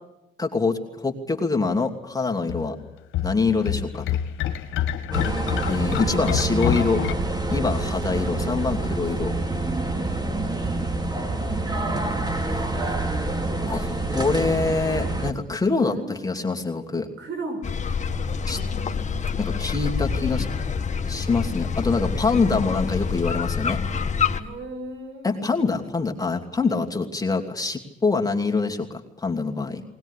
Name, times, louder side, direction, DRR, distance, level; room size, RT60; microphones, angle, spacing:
voice 1, 0.4-2.8 3.2-4.0 5.7-7.0 7.5-9.3 13.7-17.1 18.5-18.6 19.4-20.5 21.1-23.8 25.2-29.8, left 4 dB, 20° left, 2 dB, 2.7 m, -25 dB
sound 1, 2.5-7.1, left 10 dB, 80° left, 1.4 m, -27 dB
sound 2, 5.1-15.3, right 2 dB, 20° right, 2.5 m, -27 dB
voice 2, 5.6-6.1 11.2-13.2 15.8-16.2 17.2-17.6 18.6-19.5 24.4-25.5, right 2 dB, 75° right, 6 dB, 6.4 m, -38 dB
sound 3, 17.6-24.4, left 6 dB, 35° left, 1.7 m, -27 dB
20.0 x 20.0 x 10.0 m, 0.91 s
cardioid pair, 90°, 20 cm